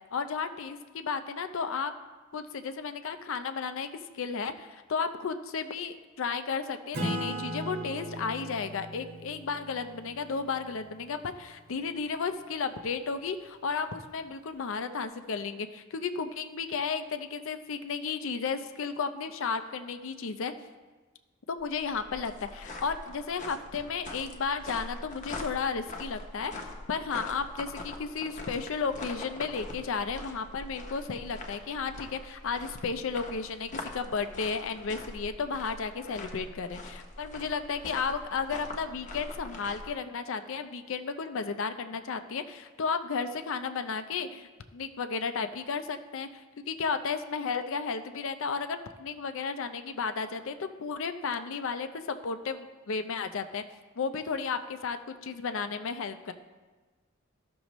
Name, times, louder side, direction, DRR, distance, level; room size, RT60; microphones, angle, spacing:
voice 1, 0.1-1.9 2.3-3.9 4.1-20.5 21.5-26.5 26.9-53.6 54.0-56.3, left 5 dB, 65° left, 9 dB, 0.5 m, -33 dB
Acoustic guitar / Strum, 6.9-11.9, right 1 dB, 50° right, 1.4 m, -38 dB
sound 1, 21.6-39.9, left 2 dB, 35° left, 0.9 m, -43 dB
13.5 x 6.2 x 3.0 m, 1.3 s
head